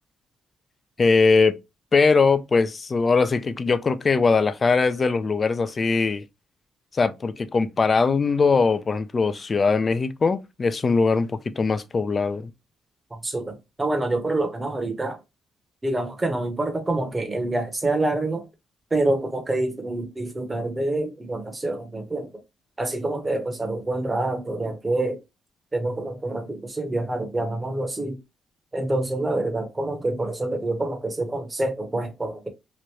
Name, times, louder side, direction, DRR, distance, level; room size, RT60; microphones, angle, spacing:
voice 1, 1.0-1.6 1.9-6.2 6.9-12.5, left 4 dB, 35° left, 0.4 m, -21 dB
voice 2, 13.2-15.2 15.8-18.4 18.9-22.3 22.8-25.2 25.7-28.2 28.7-32.5, right 2 dB, 20° right, 0.9 m, -26 dB
3.0 x 2.5 x 3.1 m
cardioid pair, 90°, 0 cm